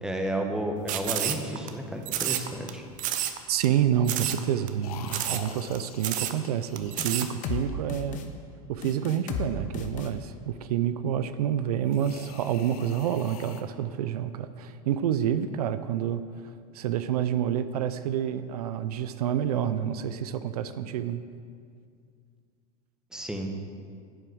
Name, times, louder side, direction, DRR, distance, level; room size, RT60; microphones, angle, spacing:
voice 1, 0.0-2.9 23.1-23.5, right 1 dB, 5° right, 3 dB, 1.2 m, -32 dB
sound 1, 0.9-1.7 2.1-2.7 3.0-3.4 3.6-3.7 4.1-4.4 4.7-4.8 5.1-5.5 5.7-5.8 6.0-6.4 6.8-7.3, right 12 dB, 45° right, 0.8 m, -29 dB
voice 2, 3.5-8.3 8.7-16.2 16.7-21.2, right 10 dB, 80° right, 12 dB, 0.5 m, -28 dB
sound 2, 4.8-8.0 11.8-13.6, left 7 dB, 75° left, 0.9 m, -45 dB
sound 3, 7.0-7.6 7.9-8.3 8.8-9.5 9.7-10.1, left 7 dB, 40° left, 1.1 m, -33 dB
9.6 x 7.7 x 6.2 m, 2.2 s
hypercardioid pair, 105°, 19 cm